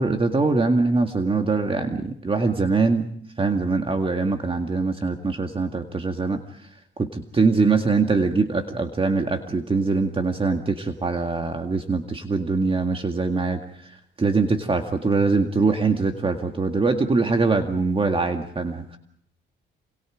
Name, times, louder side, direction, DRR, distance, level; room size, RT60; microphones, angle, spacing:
voice 1, 0.0-3.1 3.4-6.4 7.0-13.6 14.2-19.0, right 3 dB, 25° right, 5 dB, 2.0 m, -23 dB
27.5 x 26.0 x 5.1 m, 0.64 s
cardioid pair, 90°, 20 cm